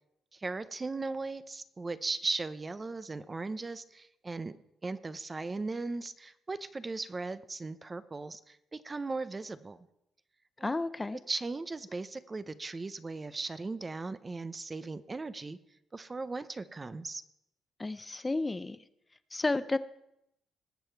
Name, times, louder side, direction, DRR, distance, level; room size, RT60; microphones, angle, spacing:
voice 1, 0.3-4.5 4.8-9.8 10.6-10.7 11.3-15.6 15.9-17.2, right 3 dB, 25° right, 14 dB, 0.7 m, -37 dB
voice 2, 10.6-11.2 17.8-18.8 19.3-19.8, left 2 dB, 20° left, 13 dB, 0.5 m, -32 dB
19.5 x 7.7 x 4.6 m, 0.81 s
cardioid pair, 90°, 0 cm